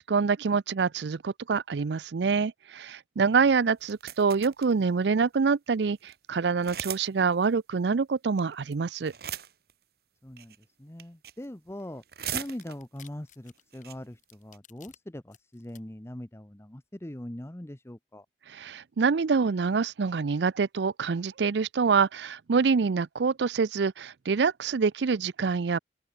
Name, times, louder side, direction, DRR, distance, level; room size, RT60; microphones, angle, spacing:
voice 1, 0.0-9.1 18.5-25.8, right 5 dB, 75° right, 0.5 m, -26 dB
sound 1, 3.8-4.7 5.3-5.4 5.7-5.8 6.0-6.1 6.6-7.1 7.3-7.4 8.4-8.7 9.0-9.7 10.4-10.6 11.0-11.5 11.8-13.0 13.5-13.6 13.7-13.9 14.3-14.6, right 9 dB, 60° right, 2.4 m, -38 dB
voice 2, 10.2-12.0 12.3-18.3, left 1 dB, 15° left, 0.9 m, -41 dB
sound 2, 12.2-15.0 15.3-15.8, left 10 dB, 45° left, 4.8 m, -55 dB
head